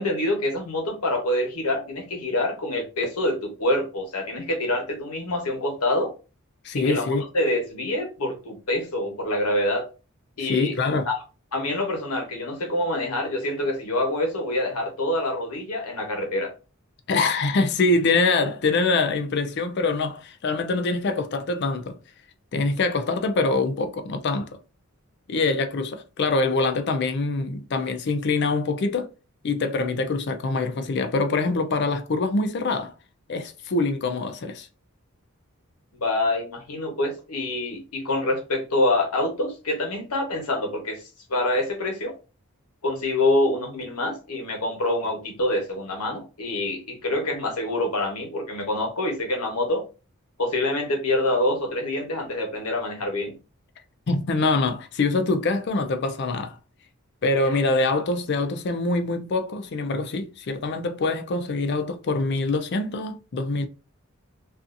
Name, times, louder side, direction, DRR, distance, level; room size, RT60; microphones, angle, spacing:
voice 1, 0.0-6.1 6.7-9.9 10.4-10.7 11.1-11.2 11.5-16.5 35.9-41.0 41.3-42.1 42.8-49.8 50.4-53.4, left 1 dB, 85° left, 1.0 m, -26 dB
voice 2, 6.6-7.2 10.4-11.1 17.1-22.0 22.5-24.5 25.3-29.1 29.4-32.9 33.3-34.7 54.1-56.6 57.2-63.7, left 3 dB, 50° left, 0.4 m, -24 dB
2.6 x 2.4 x 2.4 m
head